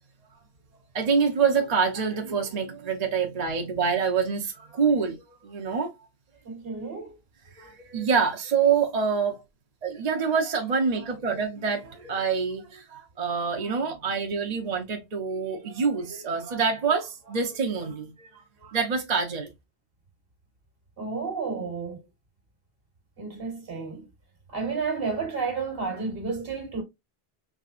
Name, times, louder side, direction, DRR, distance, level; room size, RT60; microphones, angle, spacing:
voice 1, 0.9-5.9 7.5-9.4 9.8-19.5, right 6 dB, 40° right, 0.8 m, -26 dB
voice 2, 6.4-7.1 21.0-22.0 23.2-24.1 24.5-26.8, right 4 dB, 60° right, 1.5 m, -31 dB
4.8 x 3.3 x 2.4 m
omnidirectional pair, 1.1 m